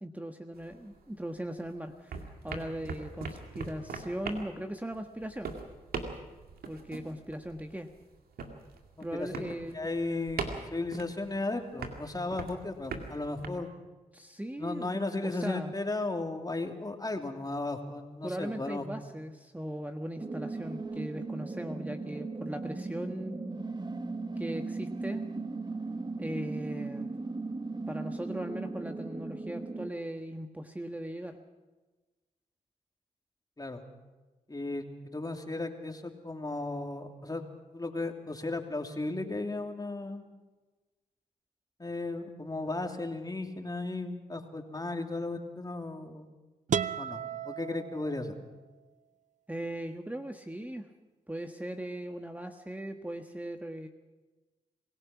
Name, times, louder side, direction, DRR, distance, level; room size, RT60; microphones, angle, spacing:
voice 1, 0.0-5.6 6.7-7.9 9.0-9.9 14.1-15.7 18.2-23.4 24.4-25.3 26.2-27.1 27.9-31.4 49.5-50.9 51.3-53.9, right 1 dB, 10° right, 5 dB, 1.4 m, -39 dB
sound 1, 0.5-1.7 1.9-13.5, right 4 dB, 90° right, 2.2 m, -41 dB
voice 2, 9.0-13.7 14.6-18.8 33.6-33.8 34.5-37.4 37.7-40.2 41.8-46.3 47.0-48.3, left 2 dB, 25° left, 4 dB, 2.9 m, -35 dB
sound 2, 20.2-29.9, right 3 dB, 30° right, 1.6 m, -37 dB
sound 3, 46.7-48.6, right 7 dB, 55° right, 0.6 m, -34 dB
26.0 x 17.0 x 6.0 m, 1.2 s
cardioid pair, 50°, 15 cm